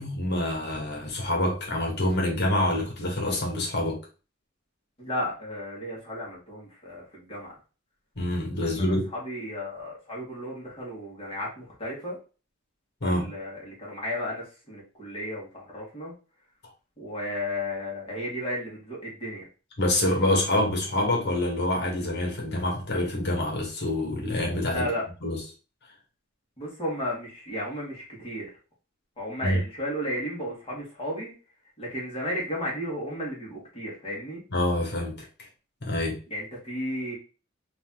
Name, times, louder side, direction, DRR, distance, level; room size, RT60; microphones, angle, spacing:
voice 1, 0.0-4.0 8.1-9.1 13.0-13.3 19.8-24.9 25.2-25.4 29.4-29.6 34.5-35.3 35.8-36.2, left 1 dB, 55° left, 1.7 m, -26 dB
voice 2, 5.0-7.6 8.6-12.2 13.0-16.1 17.0-19.4 24.6-25.0 26.6-28.5 29.2-31.3 31.8-34.4 36.3-37.1, left 1 dB, 30° left, 1.9 m, -34 dB
4.0 x 2.9 x 3.7 m
head